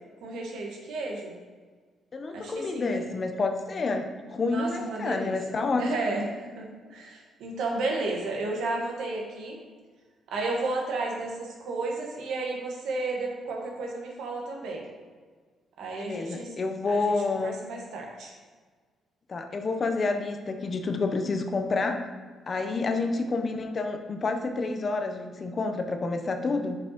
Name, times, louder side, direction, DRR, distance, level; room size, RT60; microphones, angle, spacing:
voice 1, 0.2-1.3 2.3-3.0 4.5-5.3 5.8-9.6 10.3-14.8 15.8-16.5 16.9-18.3 22.6-23.0, right 3 dB, 80° right, 0 dB, 1.3 m, -33 dB
voice 2, 2.1-5.9 15.9-17.6 19.3-22.1 22.5-26.8, left 3 dB, 40° left, 6 dB, 0.6 m, -29 dB
7.9 x 5.2 x 2.9 m, 1.5 s
cardioid pair, 90°, 0 cm